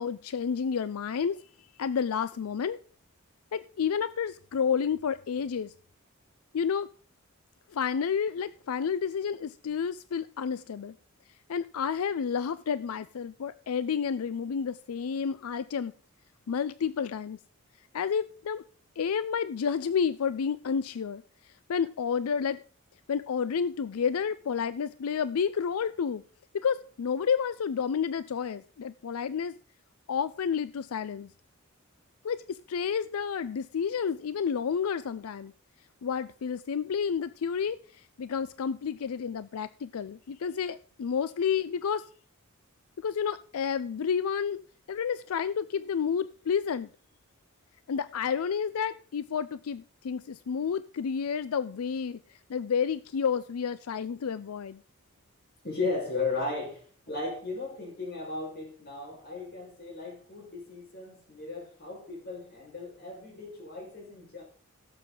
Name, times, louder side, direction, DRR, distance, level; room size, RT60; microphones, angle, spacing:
voice 1, 0.0-1.4 1.8-2.8 3.5-5.7 6.5-6.9 7.7-10.9 11.5-15.9 16.5-17.4 17.9-18.6 19.0-22.6 23.1-26.2 26.5-29.5 30.1-31.3 32.2-35.5 36.0-42.1 43.0-44.6 44.9-46.9 47.9-54.8, left 7 dB, 90° left, 15 dB, 0.4 m, -30 dB
voice 2, 55.6-64.4, left 3 dB, 50° left, 0 dB, 5.0 m, -36 dB
17.0 x 7.5 x 3.8 m, 0.42 s
head